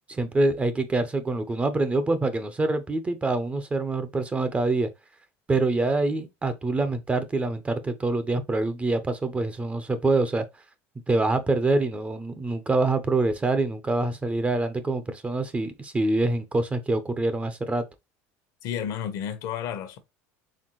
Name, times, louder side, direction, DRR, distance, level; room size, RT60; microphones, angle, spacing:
voice 1, 0.1-4.9 5.5-10.4 11.1-17.8, right 2 dB, 20° right, 0.7 m, -25 dB
voice 2, 18.6-20.0, left 9 dB, 65° left, 1.0 m, -31 dB
4.3 x 3.4 x 3.1 m
supercardioid pair, 105°, 7 cm